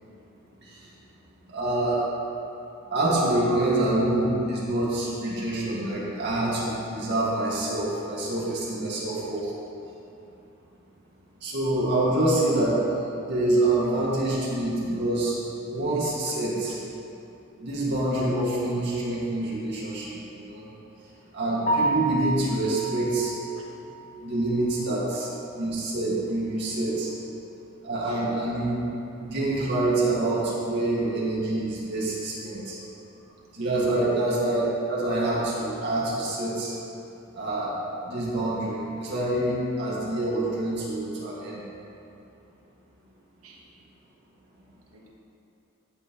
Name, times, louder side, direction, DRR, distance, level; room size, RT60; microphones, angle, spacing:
voice 1, 1.5-2.0 2.9-9.5 11.4-12.8 13.1-15.3 15.6-16.8 17.6-20.7 21.3-23.3 24.2-25.3 25.6-27.1 27.8-28.8 29.2-32.8 33.5-34.6 34.9-36.8 37.3-37.8 38.0-41.6, right 1 dB, 55° right, -7 dB, 1.9 m, -26 dB
Piano, 21.6-25.6 26.0-26.1 26.6-26.7 27.0-27.1 30.2-30.3 38.8-39.0, right 2 dB, 35° left, 0.9 m, -31 dB
voice 2, 28.0-28.4 33.1-33.9 43.4-43.6 44.9-45.1, right 1 dB, 80° right, -2 dB, 1.3 m, -45 dB
12.5 x 5.5 x 3.0 m, 2.8 s
head